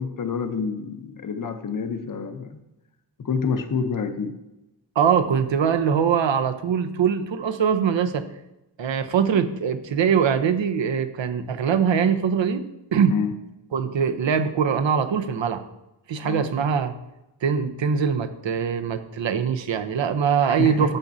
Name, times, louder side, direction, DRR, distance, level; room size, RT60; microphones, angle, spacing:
voice 1, 0.0-2.6 3.2-4.4 13.1-13.3 16.2-16.5 20.4-20.9, left 5 dB, 45° left, 8 dB, 0.8 m, -28 dB
voice 2, 5.0-8.2 8.8-12.6 12.9-13.2 13.7-15.6 16.1-16.9 17.4-21.0, right 7 dB, 70° right, 10 dB, 0.8 m, -22 dB
12.0 x 7.2 x 2.7 m, 0.94 s
wide cardioid pair, 140°, 46 cm